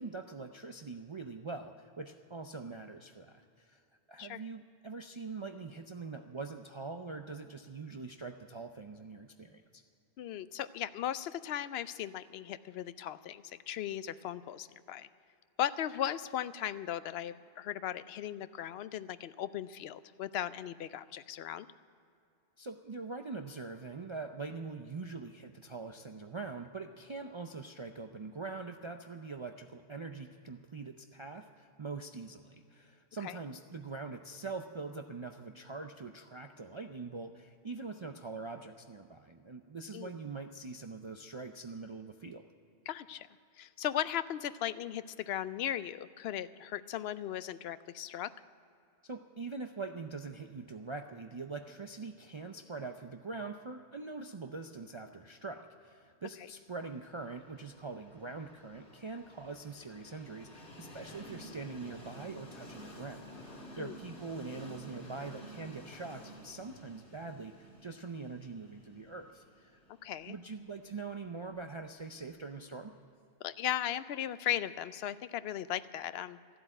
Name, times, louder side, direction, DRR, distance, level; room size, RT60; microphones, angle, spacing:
voice 1, 0.0-3.8 4.1-9.8 22.6-42.5 49.0-69.7 70.3-72.9, right 4 dB, 40° right, 5 dB, 0.4 m, -43 dB
voice 2, 10.2-15.1 15.6-21.7 33.2-33.4 39.9-40.1 42.9-43.3 43.6-48.3 63.8-63.9 70.0-70.4 73.4-76.4, left 11 dB, 70° left, 15 dB, 0.8 m, -37 dB
Train, 57.0-72.8, equal, 85° left, 2.9 m, -52 dB
14.0 x 8.0 x 10.0 m, 2.6 s
omnidirectional pair, 1.1 m